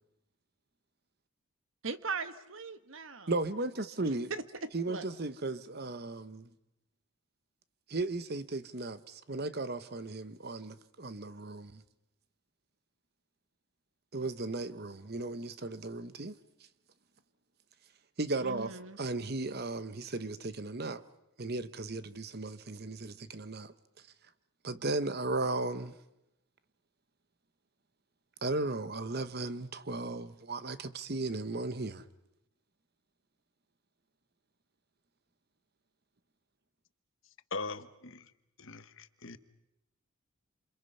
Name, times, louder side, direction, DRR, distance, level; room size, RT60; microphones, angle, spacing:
voice 1, 1.8-3.3 4.0-5.0 18.4-19.0, right 4 dB, 65° right, 1.3 m, -40 dB
voice 2, 3.3-4.3 4.7-6.5 7.9-11.8 14.1-16.3 18.2-18.7 19.0-21.0 21.4-23.7 24.6-25.9 28.4-32.0, right 2 dB, 45° right, 1.0 m, -36 dB
voice 3, 37.5-38.3 38.6-39.4, left 3 dB, 65° left, 1.2 m, -41 dB
28.0 x 28.0 x 5.5 m
head